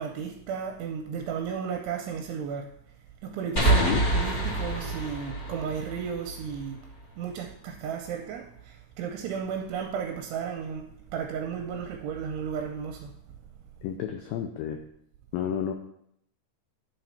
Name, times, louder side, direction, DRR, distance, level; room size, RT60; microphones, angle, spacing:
voice 1, 0.0-2.7 3.2-6.8 7.2-13.2, right 7 dB, 80° right, 2 dB, 2.7 m, -34 dB
sound 1, 3.6-7.0, right 2 dB, 25° left, 2.6 m, -27 dB
voice 2, 13.8-14.8 15.3-15.7, left 9 dB, 85° left, 5 dB, 2.0 m, -30 dB
9.7 x 4.1 x 5.8 m, 0.73 s
omnidirectional pair, 4.9 m